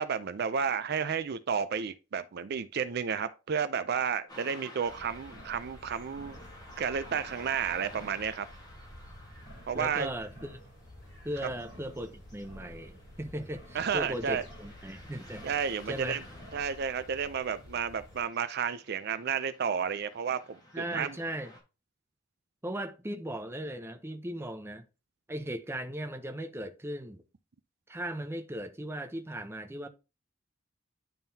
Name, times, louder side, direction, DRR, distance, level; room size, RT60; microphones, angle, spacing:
voice 1, 0.0-6.4 6.8-8.5 9.7-10.1 13.7-14.4 15.4-16.2 16.5-21.2, right 7 dB, 55° right, 0.4 m, -32 dB
Car passing by / Traffic noise roadway noise, 4.3-21.6, equal, 20° left, 1.5 m, -54 dB
sound 1, 4.8-18.2, equal, 60° left, 3.6 m, -51 dB
voice 2, 9.7-10.6 11.2-15.5 15.9-16.2 20.7-21.5 22.6-24.8 25.3-27.2 27.9-29.9, right 1 dB, 15° right, 0.6 m, -37 dB
10.5 x 3.7 x 2.7 m
head